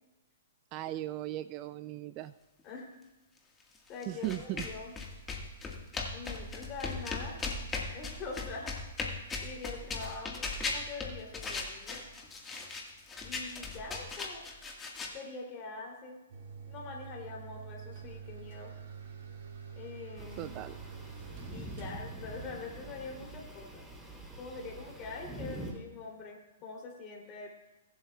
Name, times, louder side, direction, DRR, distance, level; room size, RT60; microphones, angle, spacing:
voice 1, 0.7-2.3 4.1-4.7 20.4-20.8, right 15 dB, 35° right, 14 dB, 0.3 m, -37 dB
voice 2, 3.9-4.9 6.1-7.4 7.9-8.7 9.4-12.1 13.2-14.4 15.1-16.2 16.7-18.7 19.8-20.5 21.5-23.8 24.4-27.5, left 4 dB, 30° left, 0 dB, 3.0 m, -44 dB
sound 1, 4.0-15.1, left 3 dB, 15° left, 1.6 m, -38 dB
sound 2, 16.3-25.0, right 7 dB, 55° right, 2.5 m, -47 dB
sound 3, 20.2-25.7, right 1 dB, ahead, 3.2 m, -45 dB
23.0 x 7.8 x 2.3 m, 1.1 s
hypercardioid pair, 135°, 0 cm